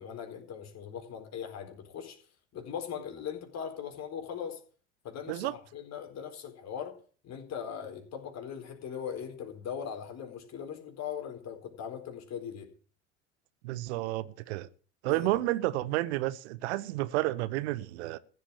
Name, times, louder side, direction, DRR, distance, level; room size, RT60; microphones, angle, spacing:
voice 1, 0.0-2.2 2.5-4.6 5.0-6.9 7.2-12.7 15.1-15.4, left 8 dB, 45° left, 4.2 m, -40 dB
voice 2, 13.6-14.7 15.0-18.2, right 17 dB, 65° right, 0.9 m, -31 dB
15.0 x 8.4 x 7.2 m
figure-of-eight pair, 70°, 36 cm